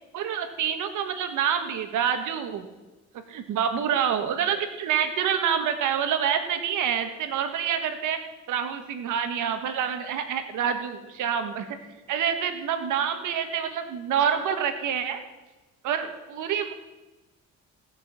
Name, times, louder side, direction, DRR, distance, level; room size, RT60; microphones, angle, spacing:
voice 1, 0.1-2.6 3.1-8.2 8.5-11.8 12.1-15.2 15.8-16.7, right 8 dB, 85° right, 7 dB, 1.6 m, -27 dB
16.5 x 6.4 x 7.4 m, 1.1 s
cardioid pair, 90°, 30 cm